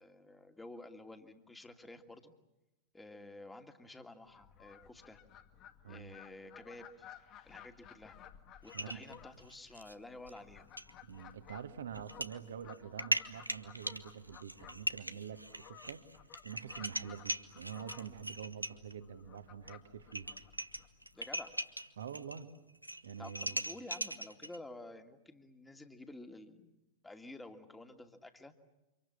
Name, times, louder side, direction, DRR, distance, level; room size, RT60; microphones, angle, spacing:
voice 1, 0.0-2.3 2.9-5.2 5.9-7.1 7.4-8.2 8.6-10.7 21.1-21.5 23.2-28.5, left 2 dB, 10° left, 6 dB, 2.6 m, -51 dB
Fowl, 4.3-21.6, left 10 dB, 35° left, 2.3 m, -57 dB
sound 1, 8.7-9.9 10.3-10.4 10.8-10.9 11.9-12.3 12.7-18.9 19.7-19.8 20.0-22.4 22.7-24.6, right 1 dB, 90° right, 1.3 m, -40 dB
voice 2, 11.0-16.0 16.4-20.3 22.0-22.5 23.0-23.6, right 8 dB, 65° right, 8 dB, 2.2 m, -46 dB
30.0 x 27.0 x 7.2 m, 0.99 s
figure-of-eight pair, 90°, 0 cm